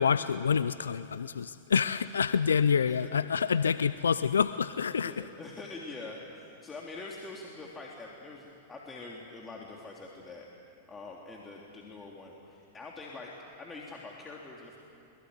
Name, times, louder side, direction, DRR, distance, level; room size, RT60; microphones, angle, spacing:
voice 1, 0.0-5.1, left 6 dB, 85° left, 14 dB, 0.5 m, -27 dB
voice 2, 2.9-3.2 5.0-10.5 10.9-13.3 13.6-14.8, left 3 dB, 20° left, -2 dB, 3.1 m, -44 dB
23.0 x 22.0 x 9.6 m, 2.8 s
hypercardioid pair, 100°, 0 cm